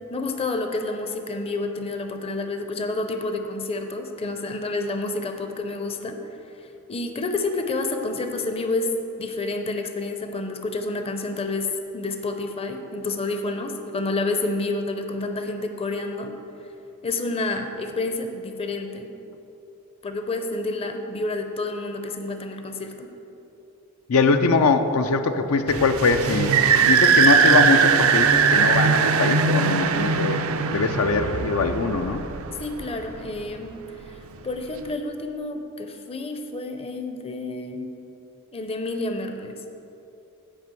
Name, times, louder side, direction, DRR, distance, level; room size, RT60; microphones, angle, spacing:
voice 1, 0.1-6.2 6.6-16.3 17.0-19.1 20.0-23.1 32.6-33.7 34.1-34.2 34.4-37.9 38.5-39.6, left 2 dB, 25° left, 6 dB, 0.6 m, -29 dB
voice 2, 24.1-30.4 30.7-32.2, left 4 dB, 80° left, 8 dB, 0.5 m, -22 dB
sound 1, 25.7-33.0, right 5 dB, 70° right, 0.5 m, -20 dB
8.8 x 5.0 x 7.6 m, 3.0 s
head